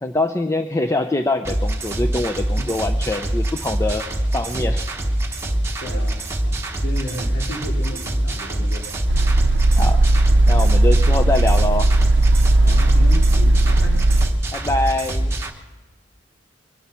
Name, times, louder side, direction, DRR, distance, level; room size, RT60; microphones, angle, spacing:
voice 1, 0.0-4.0 4.3-4.8 9.8-10.0 10.5-11.9 14.5-15.3, left 2 dB, 15° left, 7 dB, 0.4 m, -23 dB
sound 1, 1.4-15.5, right 1 dB, 15° right, 1.1 m, -24 dB
voice 2, 5.8-8.9 12.6-14.1, equal, 65° left, -1 dB, 3.0 m, -34 dB
sound 2, 9.1-14.3, right 2 dB, 60° right, 0.6 m, -16 dB
23.0 x 10.5 x 5.6 m, 1.2 s
head